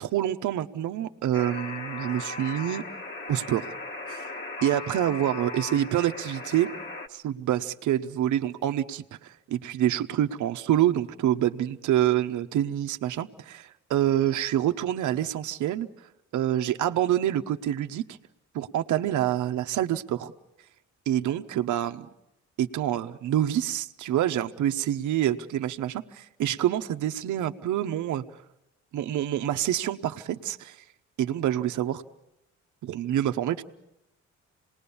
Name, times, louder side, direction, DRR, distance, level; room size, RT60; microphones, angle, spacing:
voice 1, 0.0-2.8 3.3-3.7 4.1-4.3 4.6-6.7 7.1-15.9 16.3-18.2 18.5-20.3 21.1-22.1 22.6-28.2 28.9-30.8 31.2-32.0 32.8-33.6, right 12 dB, 80° right, 7 dB, 1.0 m, -27 dB
Alarm, 1.3-7.1, left 3 dB, 40° left, 1.6 m, -38 dB
27.0 x 20.0 x 7.1 m, 0.89 s
cardioid pair, 90°, 30 cm